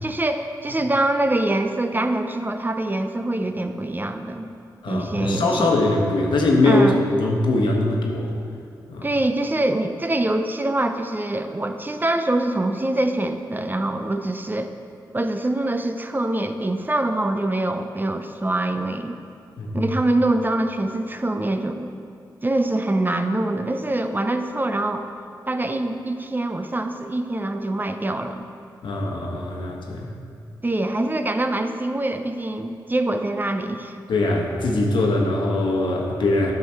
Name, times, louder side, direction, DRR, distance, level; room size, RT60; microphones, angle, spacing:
voice 1, 0.0-4.5 4.9-5.7 6.6-7.0 9.0-14.7 15.1-19.2 19.7-21.9 22.4-25.1 25.5-28.5 30.6-34.0, right 1 dB, 25° right, 7 dB, 0.6 m, -24 dB
voice 2, 4.8-8.3 8.9-9.1 19.6-19.9 28.8-30.1 34.1-36.5, left 2 dB, 75° left, 0 dB, 1.2 m, -21 dB
9.6 x 5.8 x 4.4 m, 2.4 s
cardioid pair, 50°, 8 cm